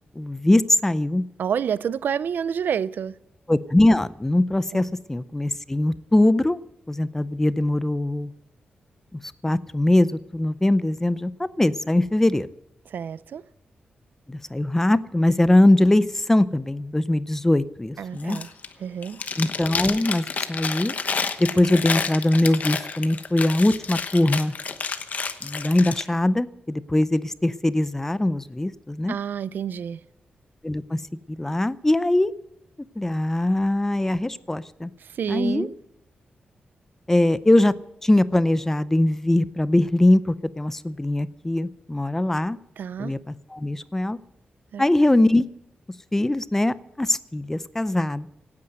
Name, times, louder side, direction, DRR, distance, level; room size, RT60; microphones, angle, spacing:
voice 1, 0.2-1.2 3.5-6.6 6.9-8.3 9.1-12.5 14.3-18.4 19.4-20.9 21.4-24.5 25.4-29.2 30.6-31.0 31.3-32.3 33.0-34.9 35.3-35.7 37.1-37.7 38.0-42.6 43.0-44.2 44.8-45.5 46.1-48.3, left 1 dB, 10° left, 0.5 m, -21 dB
voice 2, 1.4-3.2 4.7-4.8 12.9-13.4 18.0-18.5 18.8-19.2 29.1-30.0 35.0-35.7 42.8-43.1 44.7-44.8, right 8 dB, 75° right, 0.5 m, -28 dB
Chewing mastication, 18.2-18.7 19.0-26.0, left 5 dB, 50° left, 1.0 m, -30 dB
17.0 x 9.6 x 7.9 m
wide cardioid pair, 135°, 3 cm